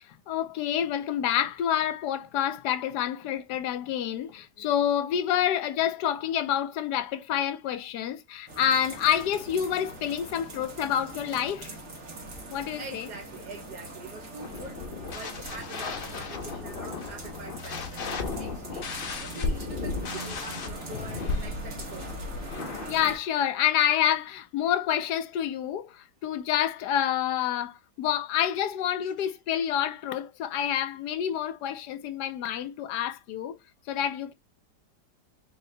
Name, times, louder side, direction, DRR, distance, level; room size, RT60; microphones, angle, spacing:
voice 1, 0.0-11.8 12.5-13.1 20.9-21.3 22.9-33.6 33.9-34.3, left 10 dB, 75° left, 1.1 m, -28 dB
Mountain neighborhood - Melting snow, 8.5-23.2, right 1 dB, 50° right, 1.6 m, -42 dB
voice 2, 12.8-18.9 19.2-22.1 29.2-29.3, right 3 dB, 70° right, 1.4 m, -44 dB
sound 1, 14.4-22.9, left 4 dB, 60° left, 0.5 m, -35 dB
4.2 x 2.7 x 3.2 m
omnidirectional pair, 1.9 m